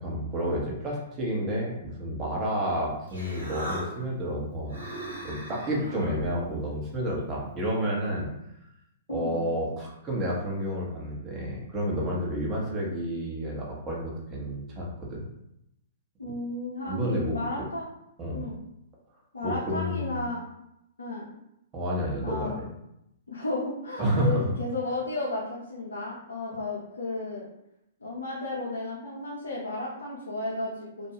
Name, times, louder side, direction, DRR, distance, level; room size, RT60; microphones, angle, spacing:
voice 1, 0.0-4.8 5.2-8.3 9.1-15.3 16.9-17.6 18.2-18.4 19.4-20.2 21.7-22.5 24.0-24.5, equal, 25° right, -3 dB, 0.9 m, -30 dB
Human voice, 2.7-7.9, right 1 dB, 85° right, 1.3 m, -41 dB
voice 2, 16.2-17.8 18.3-18.5 19.3-20.4 21.0-21.3 22.2-22.5 23.3-27.5 28.0-31.1, left 2 dB, 85° left, -5 dB, 0.6 m, -33 dB
2.4 x 2.2 x 2.8 m, 0.82 s
hypercardioid pair, 120°, 0 cm